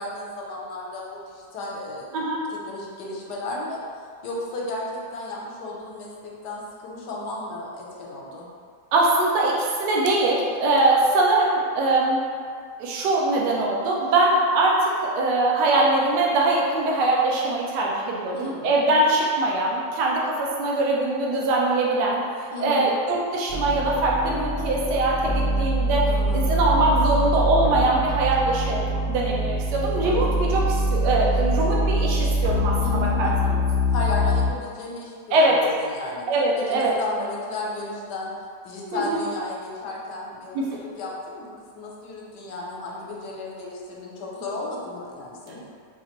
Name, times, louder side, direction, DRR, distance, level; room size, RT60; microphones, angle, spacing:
voice 1, 0.0-2.1 2.5-3.8 4.2-8.5 18.3-18.8 22.5-23.0 26.1-26.7 32.8-33.6 33.9-36.2 36.6-38.3 38.6-45.7, left 2 dB, 75° left, -3 dB, 1.3 m, -34 dB
voice 2, 8.9-12.2 12.8-22.2 22.6-26.0 26.3-33.3 35.3-35.6 36.3-36.9 38.9-39.2 40.5-40.7, right 2 dB, 75° right, -3 dB, 1.2 m, -22 dB
sound 1, 23.5-34.5, equal, 55° left, 0.8 m, -24 dB
5.4 x 2.5 x 2.9 m, 2.2 s
omnidirectional pair, 1.9 m